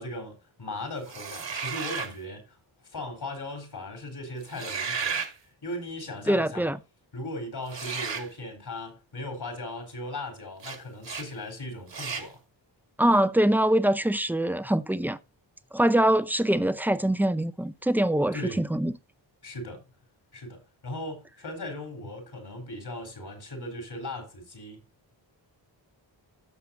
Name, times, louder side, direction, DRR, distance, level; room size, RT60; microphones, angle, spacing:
voice 1, 0.0-2.6 2.8-6.7 7.1-12.4 18.3-18.6 19.4-19.8 20.3-24.9, left 1 dB, 55° left, 3.9 m, -38 dB
sound 1, 1.1-2.2 4.4-5.3 7.7-8.3 10.6-10.8 11.0-11.3 11.9-12.3, right 6 dB, 65° right, 1.9 m, -33 dB
voice 2, 6.3-6.8 13.0-15.2 15.7-18.9, right 1 dB, 5° right, 0.5 m, -23 dB
16.5 x 6.7 x 2.6 m
wide cardioid pair, 150°, 46 cm